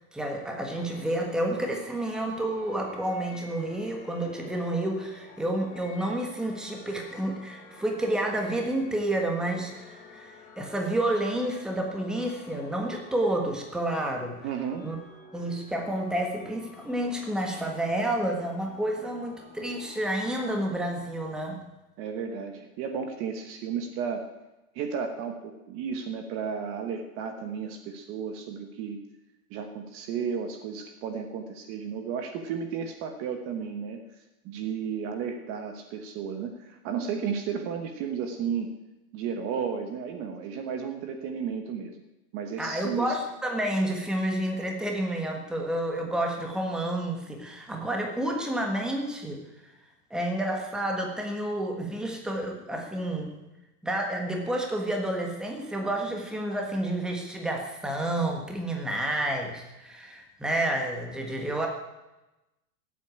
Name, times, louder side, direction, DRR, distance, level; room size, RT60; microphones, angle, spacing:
voice 1, 0.1-14.4 14.8-15.0 15.3-21.6 42.6-49.4 50.1-53.3 53.8-61.7, right 1 dB, ahead, 1 dB, 1.4 m, -30 dB
sound 1, 0.7-20.6, left 3 dB, 20° left, 3.4 m, -51 dB
voice 2, 14.4-14.9 22.0-24.3 24.7-29.0 29.5-34.0 34.4-38.8 39.1-42.0 42.3-43.2, right 6 dB, 30° right, 6 dB, 1.3 m, -33 dB
17.0 x 8.4 x 8.8 m, 1.0 s
supercardioid pair, 160°, 45 cm